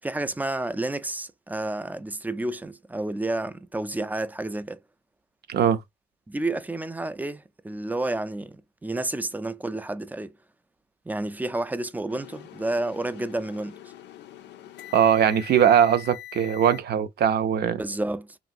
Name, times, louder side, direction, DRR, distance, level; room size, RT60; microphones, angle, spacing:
voice 1, 0.0-4.8 6.3-10.4 11.1-13.8 17.8-18.4, right 2 dB, 10° right, 0.3 m, -30 dB
voice 2, 5.5-5.8 14.9-17.8, right 9 dB, 65° right, 0.5 m, -20 dB
sound 1, 12.1-16.8, left 13 dB, 85° left, 0.4 m, -43 dB
2.9 x 2.5 x 2.5 m
cardioid pair, 80°, 18 cm